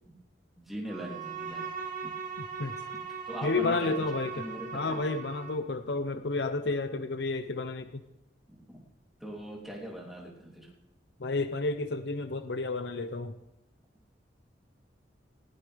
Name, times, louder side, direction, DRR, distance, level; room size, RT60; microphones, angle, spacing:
voice 1, 0.6-1.7 2.0-2.1 3.1-4.1 4.3-5.0 8.5-8.8 9.2-10.7, right 1 dB, ahead, -3 dB, 3.1 m, -41 dB
Bowed string instrument, 0.9-5.7, right 6 dB, 50° right, 2.9 m, -39 dB
voice 2, 3.4-4.4 4.7-8.0 11.2-13.3, left 3 dB, 65° left, 10 dB, 0.7 m, -31 dB
19.5 x 15.5 x 3.5 m, 0.91 s
head